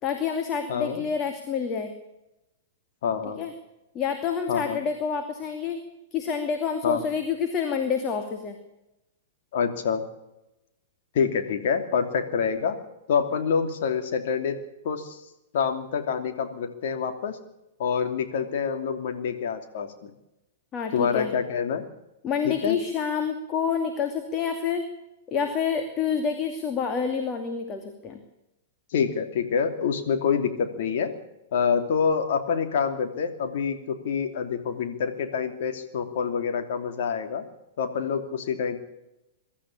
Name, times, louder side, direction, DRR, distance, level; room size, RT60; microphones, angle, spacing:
voice 1, 0.0-1.9 3.4-3.5 3.9-5.8 6.1-8.6 20.7-21.3 22.2-24.8 25.3-28.2, left 6 dB, 30° left, 5 dB, 2.6 m, -28 dB
voice 2, 0.7-1.0 3.0-3.4 4.5-4.8 6.8-7.0 9.5-10.0 11.1-12.8 13.1-14.6 14.8-15.2 15.5-17.4 17.8-20.1 20.9-21.8 22.4-22.8 28.9-31.1 31.5-37.5 37.8-38.8, left 6 dB, 55° left, 6 dB, 2.9 m, -26 dB
23.5 x 13.0 x 8.7 m, 0.93 s
figure-of-eight pair, 105°, 0 cm